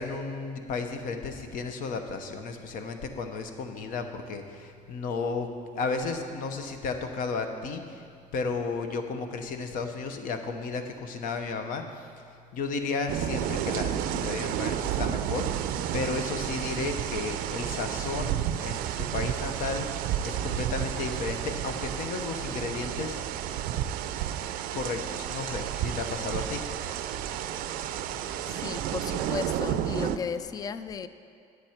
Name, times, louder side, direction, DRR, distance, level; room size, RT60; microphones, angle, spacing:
voice 1, 0.0-5.5 5.7-8.0 8.3-19.9 20.2-23.4 24.7-26.6, left 4 dB, 70° left, 6 dB, 0.8 m, -33 dB
sound 1, 13.1-30.2, right 10 dB, 80° right, 0.4 m, -31 dB
voice 2, 28.5-31.1, left 6 dB, 25° left, 13 dB, 0.3 m, -35 dB
9.6 x 7.9 x 4.4 m, 2.4 s
cardioid pair, 110°, 15 cm